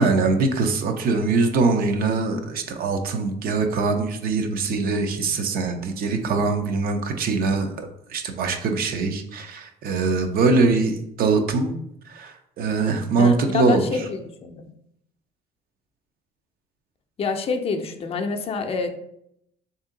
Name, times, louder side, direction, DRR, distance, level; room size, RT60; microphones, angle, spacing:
voice 1, 0.0-11.7 12.1-14.1, right 3 dB, 60° right, 6 dB, 0.6 m, -22 dB
voice 2, 13.2-14.7 17.2-18.9, left 5 dB, 35° left, 4 dB, 0.5 m, -27 dB
3.5 x 2.7 x 3.7 m, 0.75 s
cardioid pair, 110°, 17 cm